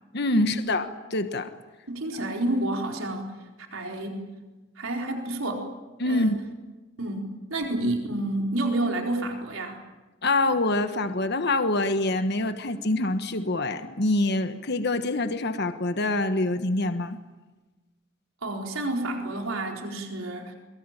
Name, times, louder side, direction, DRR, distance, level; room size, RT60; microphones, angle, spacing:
voice 1, 0.1-1.5 6.0-6.4 10.2-17.2, left 2 dB, 55° left, 8 dB, 1.4 m, -25 dB
voice 2, 1.9-3.3 3.7-4.2 4.8-5.6 6.0-6.4 7.0-9.8 18.4-20.6, right 1 dB, 90° right, 2 dB, 4.3 m, -29 dB
23.5 x 23.0 x 9.0 m, 1.2 s
head